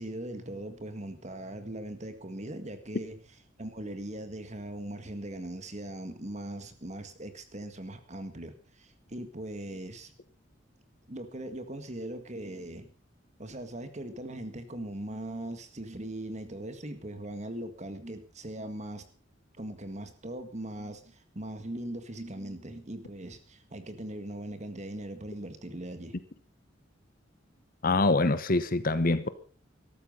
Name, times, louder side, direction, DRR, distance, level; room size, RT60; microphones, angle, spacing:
voice 1, 0.0-3.2 3.6-10.1 11.1-12.9 13.4-19.0 19.6-26.1, right 1 dB, 35° right, 1.8 m, -40 dB
voice 2, 27.8-29.3, left 2 dB, 45° left, 1.0 m, -25 dB
13.5 x 13.0 x 5.4 m
head